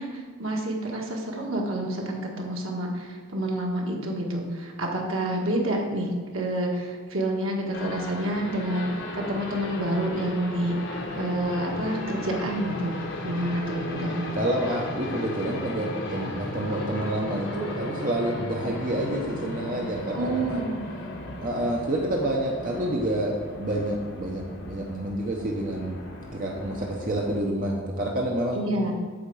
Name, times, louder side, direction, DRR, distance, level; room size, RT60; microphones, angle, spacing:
voice 1, 0.0-12.9 13.2-14.3 20.1-20.8 28.5-28.9, right 1 dB, 75° right, 0 dB, 1.6 m, -28 dB
sound 1, 7.7-27.4, left 1 dB, 65° left, 1.4 m, -36 dB
voice 2, 14.3-20.6 21.4-26.0 26.3-28.6, right 1 dB, 45° right, -1 dB, 0.9 m, -28 dB
8.7 x 4.4 x 7.1 m, 1.5 s
head